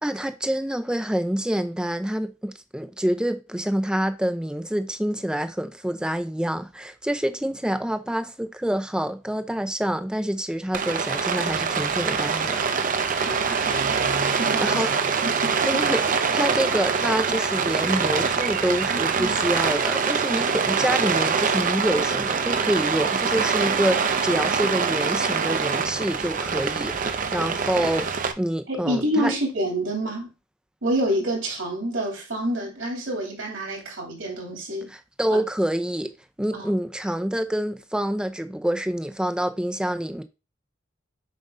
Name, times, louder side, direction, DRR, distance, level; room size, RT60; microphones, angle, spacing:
voice 1, 0.0-12.6 14.6-14.9 15.6-28.1 28.4-29.3 34.9-36.1 36.4-40.2, right 1 dB, 5° right, 0.5 m, -27 dB
Rain, 10.7-28.3, right 5 dB, 45° right, 0.6 m, -24 dB
voice 2, 13.1-14.0 14.4-14.8 15.2-15.8 28.7-30.3 30.8-34.9 35.3-35.4 36.5-36.7, right 1 dB, 70° right, 2.8 m, -28 dB
7.2 x 5.3 x 2.6 m
head